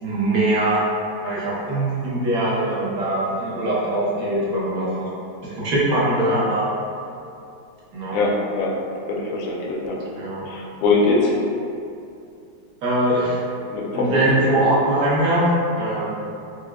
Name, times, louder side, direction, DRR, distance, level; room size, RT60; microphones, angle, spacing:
voice 1, 0.0-0.8 1.2-5.1 5.4-6.7 7.9-8.2 10.2-10.5 12.8-13.4 13.9-15.5 15.8-16.2, right 1 dB, 60° right, -7 dB, 1.0 m, -22 dB
voice 2, 8.1-8.7 9.1-10.0 10.5-11.4 13.7-14.2 14.5-14.6, left 3 dB, 85° left, -2 dB, 1.3 m, -22 dB
4.6 x 2.0 x 2.2 m, 2.5 s
omnidirectional pair, 2.0 m